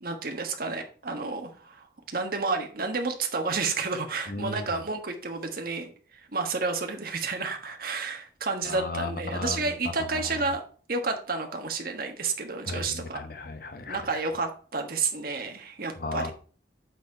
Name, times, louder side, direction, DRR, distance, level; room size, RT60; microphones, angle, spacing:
voice 1, 0.0-10.6 10.9-13.2 13.9-16.3, right 4 dB, 55° right, 1.4 m, -31 dB
voice 2, 4.3-4.6 8.7-9.6 12.7-14.0 16.0-16.3, left 2 dB, 55° left, 1.0 m, -34 dB
8.3 x 4.3 x 4.6 m
head